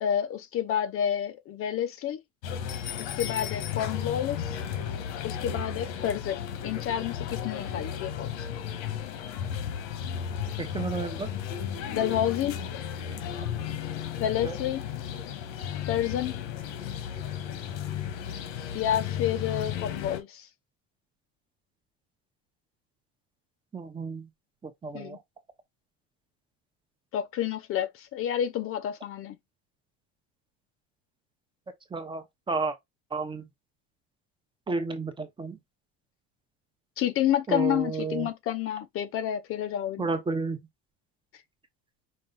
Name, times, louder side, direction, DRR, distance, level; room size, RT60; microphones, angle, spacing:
voice 1, 0.0-2.2 3.0-4.6 5.2-8.3 11.9-12.6 14.2-14.8 15.9-16.4 18.7-20.5 24.9-25.2 27.1-29.3 37.0-40.1, left 10 dB, 40° left, 0.6 m, -29 dB
sound 1, 2.4-20.2, left 8 dB, 90° left, 1.5 m, -34 dB
voice 2, 10.6-11.3 14.4-14.6 23.7-24.3 24.6-25.2 31.9-32.8 33.1-33.4 34.7-35.6 37.5-38.3 40.0-40.6, right 4 dB, 15° right, 0.8 m, -31 dB
5.5 x 2.3 x 3.9 m
cardioid pair, 155°, 34 cm